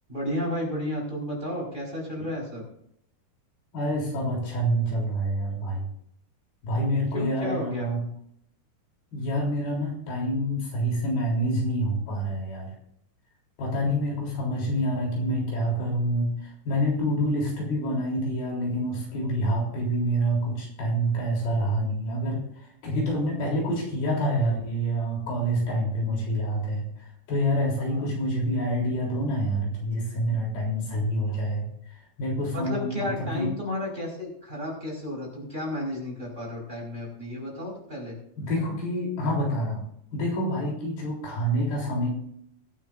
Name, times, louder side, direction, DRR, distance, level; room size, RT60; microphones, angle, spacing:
voice 1, 0.1-2.6 7.1-7.9 27.8-28.1 32.5-38.2, left 1 dB, 10° right, -2 dB, 4.7 m, -32 dB
voice 2, 3.7-5.8 6.6-8.0 9.1-12.7 13.6-22.4 22.8-26.8 27.3-31.7 32.2-33.1 33.3-33.5 38.4-39.8 40.1-42.1, equal, 80° left, -2 dB, 5.4 m, -27 dB
23.0 x 9.4 x 2.6 m, 0.71 s
omnidirectional pair, 4.3 m